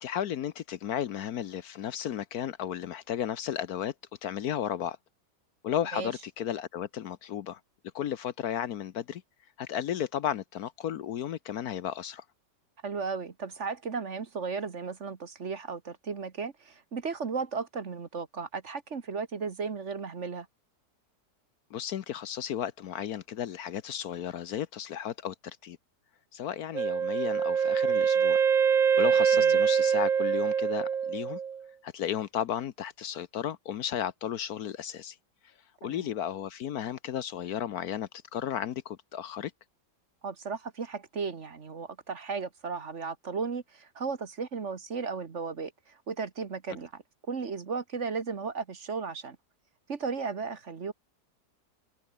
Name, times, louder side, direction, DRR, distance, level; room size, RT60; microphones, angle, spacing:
voice 1, 0.0-3.9 4.2-5.0 5.6-7.6 7.9-9.2 9.6-12.2 21.7-25.3 25.6-25.8 26.3-28.4 29.0-31.4 31.8-35.2 35.8-39.5, left 10 dB, 65° left, 1.2 m, -34 dB
voice 2, 12.8-20.5 29.3-29.6 35.8-36.1 40.2-49.4 49.9-50.9, right 5 dB, 45° right, 1.6 m, -35 dB
Wind instrument woodwind instrument, 26.7-31.6, right 7 dB, 85° right, 0.3 m, -24 dB
omnidirectional pair, 1.9 m